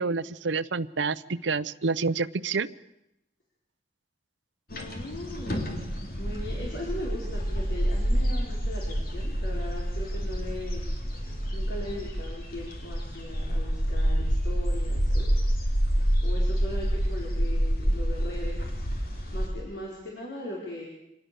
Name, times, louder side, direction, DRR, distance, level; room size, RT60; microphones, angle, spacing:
voice 1, 0.0-2.7, right 4 dB, 85° right, 14 dB, 0.7 m, -28 dB
voice 2, 4.7-15.4 16.2-18.7 19.0-20.9, left 1 dB, 75° left, -4 dB, 4.7 m, -39 dB
sound 1, 4.7-19.5, equal, 50° left, 3.3 m, -28 dB
25.0 x 19.0 x 6.9 m, 0.85 s
head